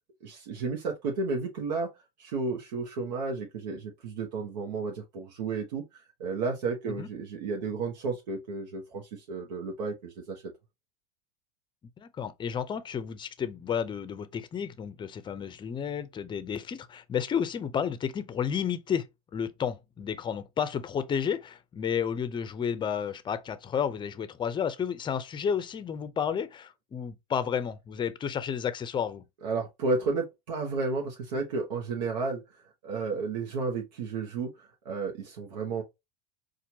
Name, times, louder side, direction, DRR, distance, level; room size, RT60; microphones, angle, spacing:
voice 1, 0.2-1.9 2.2-10.4 29.4-32.4 32.8-35.8, right 4 dB, 85° right, 1.0 m, -32 dB
voice 2, 12.0-29.2, left 7 dB, 20° left, 0.5 m, -32 dB
4.4 x 2.5 x 2.8 m
supercardioid pair, 115°, 21 cm